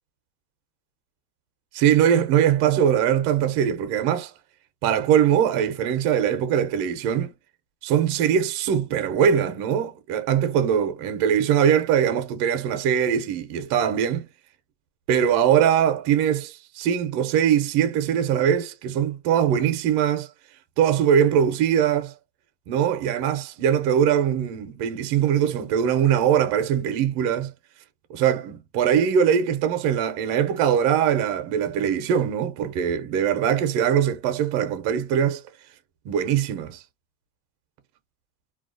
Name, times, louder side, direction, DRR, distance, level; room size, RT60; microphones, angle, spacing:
voice 1, 1.7-4.3 4.8-7.3 7.8-14.3 15.1-20.3 20.8-22.1 22.7-27.5 28.1-35.4 36.1-36.8, right 8 dB, 50° right, 0.6 m, -22 dB
2.3 x 2.3 x 2.4 m
supercardioid pair, 120°, 45 cm